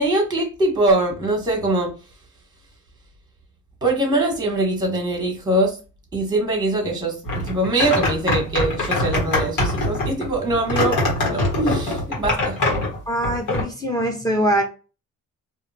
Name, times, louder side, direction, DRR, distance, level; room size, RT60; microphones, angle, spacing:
voice 1, 0.0-1.9 3.8-5.7 6.1-11.0 11.3-12.6, right 2 dB, 15° right, 2 dB, 1.4 m, -22 dB
sound 1, 7.2-13.6, left 2 dB, 85° left, 1.5 m, -23 dB
voice 2, 13.1-14.6, right 1 dB, 10° left, 1 dB, 1.0 m, -22 dB
2.6 x 2.6 x 2.8 m, 0.33 s
cardioid pair, 90°, 30 cm